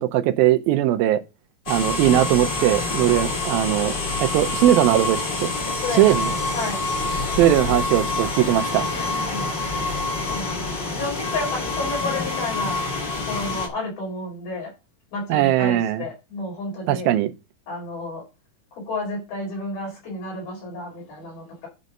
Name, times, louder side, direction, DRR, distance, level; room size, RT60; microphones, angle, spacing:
voice 1, 0.0-1.2 1.7-5.5 6.0-6.3 7.4-8.9 15.3-16.0 16.9-17.3, right 13 dB, 80° right, 2.5 m, -20 dB
sound 1, 1.7-13.7, left 3 dB, 35° left, 2.1 m, -26 dB
voice 2, 5.6-6.8 8.9-12.8 13.1-14.7 15.1-17.1 17.7-18.2 18.7-21.7, left 2 dB, 70° left, 6.5 m, -32 dB
11.0 x 4.0 x 6.5 m
omnidirectional pair, 4.3 m